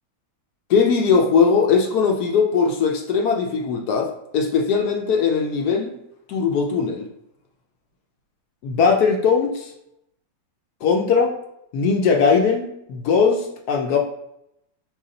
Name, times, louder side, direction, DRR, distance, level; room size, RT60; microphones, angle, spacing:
voice 1, 0.7-5.9 6.3-7.1 8.6-9.7 10.8-11.3 11.7-14.0, left 5 dB, 70° left, 3 dB, 0.9 m, -19 dB
4.6 x 2.7 x 3.8 m, 0.80 s
omnidirectional pair, 2.0 m